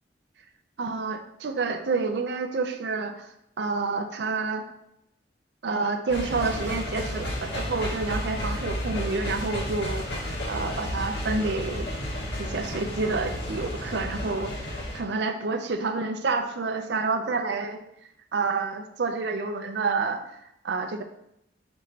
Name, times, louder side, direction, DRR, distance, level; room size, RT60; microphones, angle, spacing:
voice 1, 0.8-3.3 3.6-4.7 5.6-11.9 12.4-14.7 14.9-17.8 18.3-20.2 20.6-21.0, right 4 dB, 70° right, 6 dB, 0.5 m, -28 dB
sound 1, 6.1-15.0, equal, 70° left, 1.5 m, -32 dB
6.2 x 3.0 x 2.8 m, 0.79 s
head